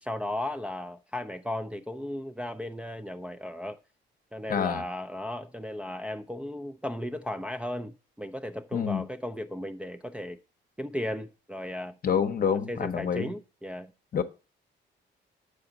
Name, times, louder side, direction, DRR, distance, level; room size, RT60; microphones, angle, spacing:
voice 1, 0.0-3.8 4.3-10.4 10.8-12.0 12.7-13.9, left 1 dB, 5° right, 0.5 m, -35 dB
voice 2, 4.5-4.8 8.7-9.0 12.0-13.3 14.1-14.2, left 7 dB, 45° left, 0.9 m, -27 dB
7.0 x 5.1 x 3.9 m
cardioid pair, 90°, 20 cm